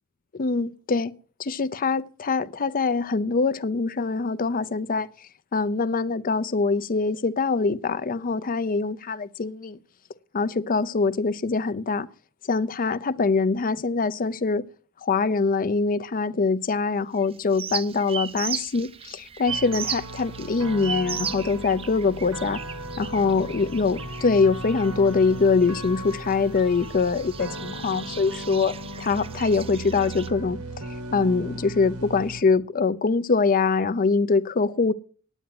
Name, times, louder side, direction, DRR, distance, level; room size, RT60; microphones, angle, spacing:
voice 1, 0.3-1.1 1.4-5.1 5.5-9.8 10.3-12.1 12.5-14.7 15.0-22.6 23.0-30.6 31.1-34.9, left 4 dB, 40° left, 0.5 m, -24 dB
sound 1, 17.2-30.3, right 7 dB, 25° right, 0.5 m, -37 dB
sound 2, 19.5-32.4, right 1 dB, 85° right, 1.5 m, -36 dB
9.3 x 9.1 x 7.7 m
head